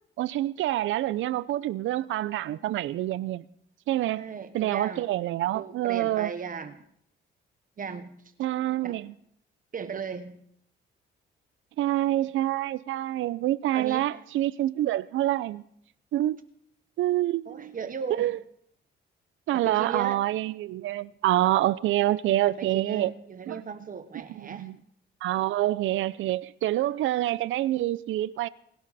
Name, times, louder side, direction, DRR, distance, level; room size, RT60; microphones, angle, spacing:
voice 1, 0.2-3.4 3.9-4.2 4.5-6.3 8.4-9.1 11.8-15.6 16.1-16.4 17.0-17.7 18.2-18.4 19.5-23.1 23.5-23.6 24.5-24.8 25.2-28.5, right 14 dB, 80° right, 0.6 m, -26 dB
voice 2, 4.0-5.1 5.5-6.8 7.8-8.2 8.8-9.0 9.7-10.4 13.7-14.2 17.5-18.3 19.5-20.2 22.5-24.8, right 6 dB, 45° right, 1.2 m, -37 dB
27.5 x 12.0 x 4.2 m
cardioid pair, 90°, 20 cm